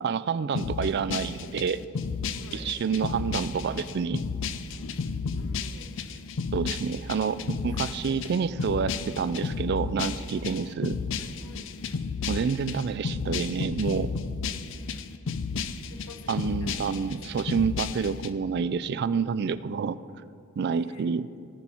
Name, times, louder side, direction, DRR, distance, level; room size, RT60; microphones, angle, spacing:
voice 1, 0.0-1.8 2.5-4.2 6.5-11.0 12.3-14.1 16.3-20.0 20.6-21.3, right 6 dB, 50° right, 15 dB, 0.3 m, -28 dB
sound 1, 0.5-18.3, left 5 dB, 60° left, 0.5 m, -33 dB
voice 2, 2.3-2.7 5.3-5.9 7.6-8.3 11.2-11.7 15.9-17.4 20.7-21.1, left 2 dB, 75° left, 6 dB, 1.0 m, -50 dB
17.0 x 6.2 x 4.5 m, 2.7 s
head